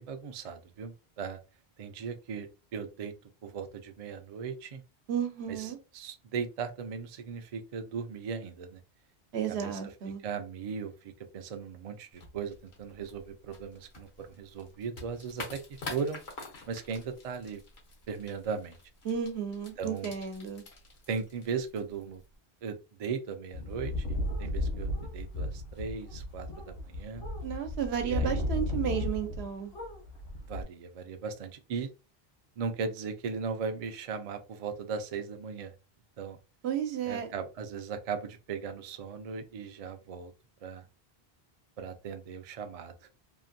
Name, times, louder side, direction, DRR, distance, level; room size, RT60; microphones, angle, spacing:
voice 1, 0.0-1.4 1.8-3.1 3.4-4.8 5.5-8.8 9.5-16.2 16.7-17.6 18.1-18.8 19.8-20.1 21.1-22.2 22.6-27.2 28.0-28.5 30.5-31.9 32.6-35.7 36.2-36.4 37.0-40.3 40.6-40.9 41.8-43.1, right 6 dB, 55° right, 0.4 m, -38 dB
voice 2, 5.1-5.8 9.3-10.2 19.0-20.6 27.4-29.7 36.6-37.3, right 8 dB, 85° right, 0.9 m, -33 dB
sound 1, 12.1-22.4, left 3 dB, 85° left, 1.2 m, -48 dB
sound 2, 23.5-29.5 29.7-30.6, left 1 dB, 70° left, 1.1 m, -34 dB
2.8 x 2.5 x 2.5 m
omnidirectional pair, 1.0 m